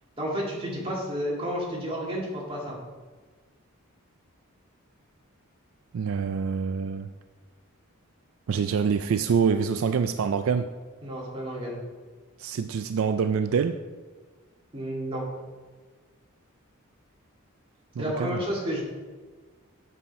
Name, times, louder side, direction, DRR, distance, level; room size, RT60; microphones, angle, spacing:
voice 1, 0.2-2.8 11.0-11.8 14.7-15.2 18.0-18.8, equal, 25° right, -4 dB, 2.2 m, -31 dB
voice 2, 5.9-7.1 8.5-10.7 12.4-13.8 18.0-18.4, right 6 dB, 70° right, 10 dB, 0.4 m, -26 dB
8.2 x 7.1 x 4.2 m, 1.4 s
head